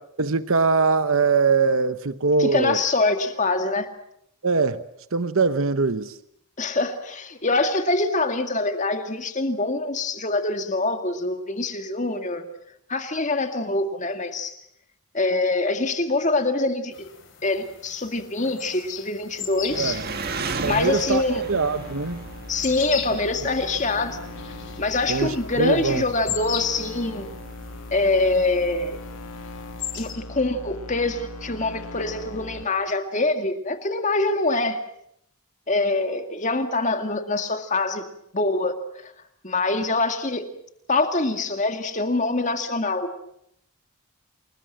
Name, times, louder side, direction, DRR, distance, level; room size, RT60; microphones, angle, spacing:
voice 1, 0.2-2.8 4.4-4.8 5.1-6.2 19.7-20.0 20.6-21.2 21.5-22.2 25.1-26.0, right 4 dB, 65° right, 0.9 m, -22 dB
voice 2, 2.4-3.9 6.6-12.5 12.9-14.6 15.1-16.9 17.4-20.0 20.6-21.4 22.5-24.2 24.8-27.3 27.9-29.0 30.0-34.8 35.7-38.0 38.3-38.7 39.0-39.1 39.4-40.4 40.9-43.1, left 2 dB, 35° left, 2.1 m, -24 dB
sound 1, 16.9-30.1, left 9 dB, 55° left, 3.7 m, -39 dB
sound 2, 19.2-32.6, left 2 dB, 80° left, 1.7 m, -40 dB
Engine, 19.7-29.9, right 3 dB, 45° right, 2.1 m, -38 dB
28.5 x 20.5 x 7.5 m
head